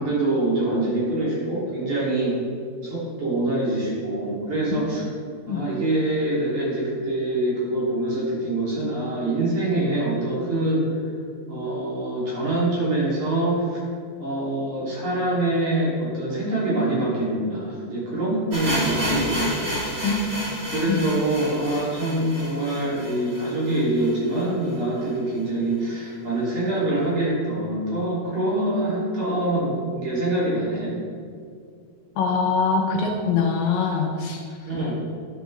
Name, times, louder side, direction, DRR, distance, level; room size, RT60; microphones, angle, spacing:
voice 1, 0.0-2.4 2.8-5.0 5.4-10.9 11.5-13.8 14.2-19.7 20.7-30.9 34.6-34.9, right 1 dB, 50° right, -7 dB, 3.9 m, -25 dB
sound 1, 18.5-24.4 24.7-24.8 25.0-25.1 25.7-25.8, equal, 25° right, 2.1 m, -30 dB
voice 2, 32.2-34.4, left 5 dB, 75° left, 1 dB, 2.2 m, -23 dB
11.0 x 9.1 x 3.3 m, 2.2 s
omnidirectional pair, 4.4 m